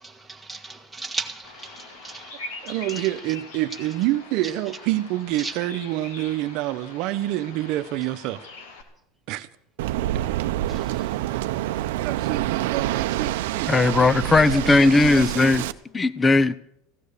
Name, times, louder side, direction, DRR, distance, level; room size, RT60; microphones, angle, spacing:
voice 1, 0.0-2.4 3.0-3.1 5.4-5.5 10.7-11.1, right 3 dB, 5° right, 1.6 m, -36 dB
Bird vocalization bird call bird song, 1.4-8.8, left 3 dB, 90° left, 2.6 m, -42 dB
voice 2, 2.6-8.4 9.3-9.5 12.0-13.7, right 16 dB, 55° right, 0.9 m, -27 dB
Waves surf, 9.8-15.7, right 14 dB, 85° right, 0.6 m, -27 dB
voice 3, 13.7-15.7 15.9-16.6, left 3 dB, 15° left, 0.5 m, -18 dB
16.5 x 12.0 x 6.7 m
supercardioid pair, 140°, 0 cm